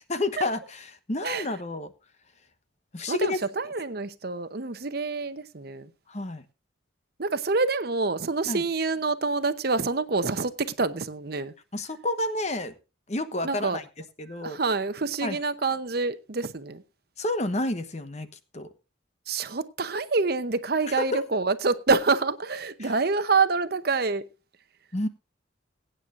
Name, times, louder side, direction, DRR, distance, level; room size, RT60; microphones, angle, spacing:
voice 1, 0.1-1.9 2.9-3.4 6.1-6.4 8.5-8.6 11.7-12.7 13.1-13.8 14.2-14.6 15.2-15.4 17.2-18.3 18.5-18.7 20.9-21.3 22.8-22.9 24.9-25.1, left 2 dB, 35° left, 1.0 m, -30 dB
voice 2, 3.1-5.9 7.2-11.5 13.4-13.8 14.3-16.8 19.3-24.2, right 4 dB, 50° right, 0.8 m, -27 dB
22.0 x 9.0 x 2.5 m
head